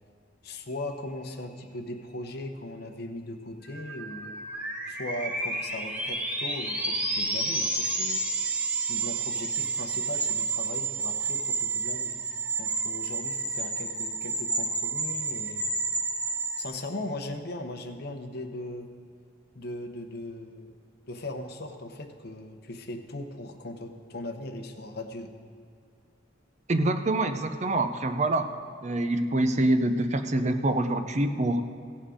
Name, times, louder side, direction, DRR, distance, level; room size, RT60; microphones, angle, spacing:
voice 1, 0.4-4.4 4.9-8.2 8.9-12.1 12.6-15.7 16.6-18.9 19.5-20.7 21.1-25.3, left 1 dB, 55° left, 6 dB, 0.9 m, -38 dB
sound 1, 3.7-16.6, right 3 dB, 5° right, 1.0 m, -30 dB
voice 2, 26.7-28.5 28.8-31.6, right 2 dB, 35° right, 9 dB, 0.5 m, -25 dB
16.5 x 7.3 x 5.1 m, 2.3 s
head